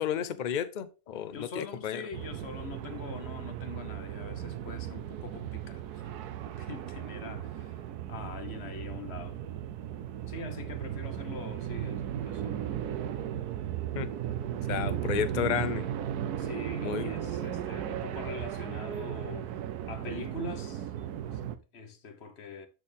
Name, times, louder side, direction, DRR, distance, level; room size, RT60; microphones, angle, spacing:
voice 1, 0.0-2.0 13.9-14.1 14.7-15.9 16.8-17.1, left 8 dB, 90° left, 0.4 m, -32 dB
voice 2, 1.3-6.1 6.6-7.8 8.1-9.4 10.3-12.6 16.4-19.5 19.9-20.9 21.2-22.7, left 4 dB, 50° left, 1.2 m, -43 dB
sound 1, 2.1-21.6, right 10 dB, 90° right, 1.2 m, -36 dB
13.0 x 4.4 x 3.4 m
omnidirectional pair, 1.6 m